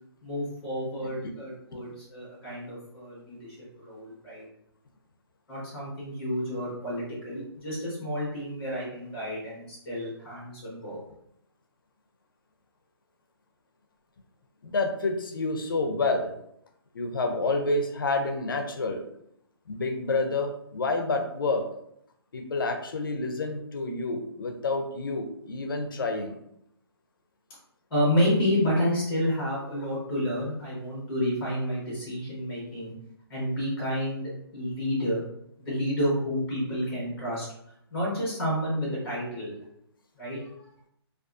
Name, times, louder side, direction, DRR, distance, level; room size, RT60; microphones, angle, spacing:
voice 1, 0.2-4.4 5.5-11.0 27.9-32.9 33.3-35.2 35.6-37.5 37.9-39.6 40.2-40.5, equal, 10° left, -6 dB, 0.8 m, -30 dB
voice 2, 14.6-16.3 16.9-19.0 19.7-21.6 22.3-26.4, left 3 dB, 55° left, 5 dB, 0.4 m, -28 dB
2.4 x 2.3 x 2.4 m, 0.73 s
hypercardioid pair, 180°, 14 cm